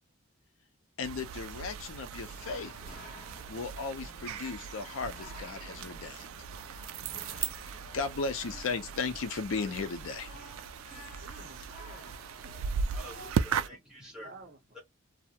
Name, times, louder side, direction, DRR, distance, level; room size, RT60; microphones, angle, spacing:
voice 1, 1.0-2.7 3.5-6.3 7.5-10.3, left 4 dB, 75° left, 0.5 m, -36 dB
sound 1, 1.0-13.7, right 6 dB, 85° right, 0.3 m, -38 dB
sound 2, 2.3-13.3, left 1 dB, 40° left, 0.7 m, -52 dB
voice 2, 10.8-12.7 13.5-13.8 14.2-14.6, right 3 dB, 50° right, 0.6 m, -54 dB
voice 3, 12.9-14.3 14.7-14.8, equal, 5° right, 1.1 m, -48 dB
2.3 x 2.0 x 2.7 m
head